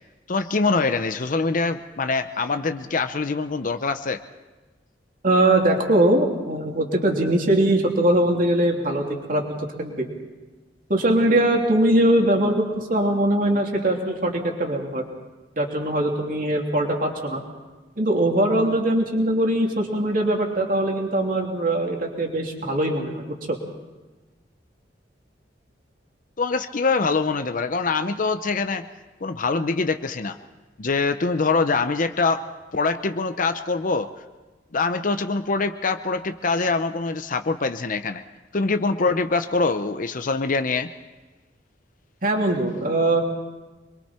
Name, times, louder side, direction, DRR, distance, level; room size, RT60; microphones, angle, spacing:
voice 1, 0.3-4.2 26.4-28.9 29.2-30.4 30.8-32.4 32.7-34.1 34.7-38.2 38.5-40.9, left 4 dB, 45° left, 9 dB, 0.7 m, -24 dB
voice 2, 5.2-9.4 9.8-10.1 10.9-15.0 15.6-17.4 18.0-23.6 42.2-43.2, right 1 dB, 50° right, 1 dB, 3.0 m, -21 dB
26.0 x 22.5 x 4.4 m, 1.2 s
head